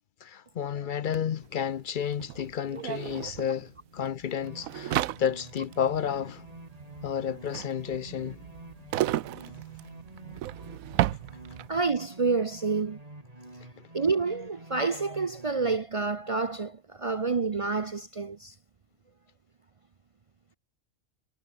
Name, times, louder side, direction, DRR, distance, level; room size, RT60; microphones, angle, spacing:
voice 1, 0.2-6.5 7.0-8.4, left 8 dB, 55° left, 0.6 m, -31 dB
sound 1, 1.1-1.2 1.4-11.9, right 14 dB, 90° right, 1.0 m, -34 dB
sound 2, 4.4-15.8, right 1 dB, 25° right, 4.3 m, -48 dB
voice 2, 11.7-13.0 13.9-18.5, right 4 dB, 50° right, 0.4 m, -28 dB
omnidirectional pair, 1.4 m